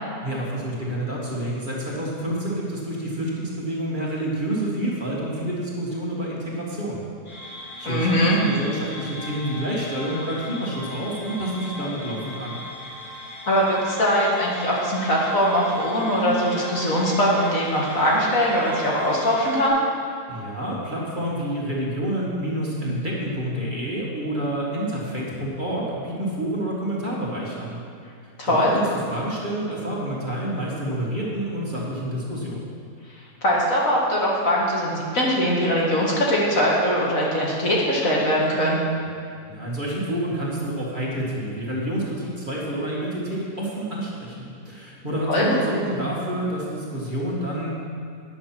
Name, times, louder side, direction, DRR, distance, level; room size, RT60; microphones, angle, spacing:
voice 1, 0.2-7.0 7.8-12.6 20.3-27.8 28.5-32.7 39.5-47.7, right 1 dB, 30° right, -6 dB, 2.0 m, -28 dB
sound 1, 7.2-19.7, left 1 dB, 80° left, 3.7 m, -38 dB
voice 2, 7.8-8.4 13.5-19.8 28.4-28.8 33.4-38.8 45.3-45.5, equal, 60° left, -4 dB, 2.3 m, -21 dB
10.0 x 7.3 x 6.0 m, 2.4 s
omnidirectional pair, 1.6 m